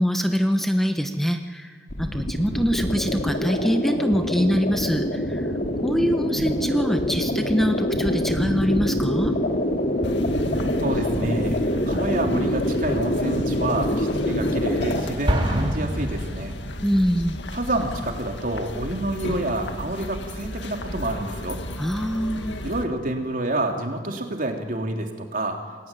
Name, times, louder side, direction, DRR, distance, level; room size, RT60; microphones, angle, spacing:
voice 1, 0.0-1.7 2.0-5.5 5.8-9.4 16.8-17.4 21.8-22.6, equal, ahead, 6 dB, 1.1 m, -24 dB
sound 1, 1.9-15.0, equal, 55° left, 3.0 m, -25 dB
sound 2, 10.0-22.8, left 1 dB, 90° left, 2.0 m, -35 dB
voice 2, 10.8-11.6 11.9-16.5 17.5-21.6 22.6-25.6, right 1 dB, 50° right, 3 dB, 3.5 m, -28 dB
Explosion, 15.3-17.1, equal, 30° right, 3.1 m, -26 dB
28.0 x 21.0 x 9.2 m, 1.5 s
head